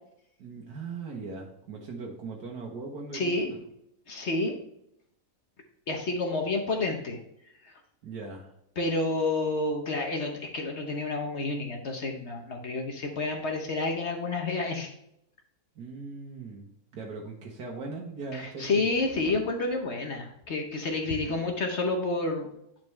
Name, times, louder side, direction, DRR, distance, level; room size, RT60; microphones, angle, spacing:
voice 1, 0.4-3.6 8.0-8.5 15.8-16.7 16.9-18.9, right 4 dB, 85° right, -1 dB, 1.6 m, -39 dB
voice 2, 3.1-3.5 4.1-4.6 5.9-7.2 7.6-7.7 8.8-14.9 18.3-22.5, left 2 dB, 50° left, 3 dB, 1.2 m, -29 dB
9.7 x 4.5 x 3.1 m, 0.76 s
omnidirectional pair, 1.6 m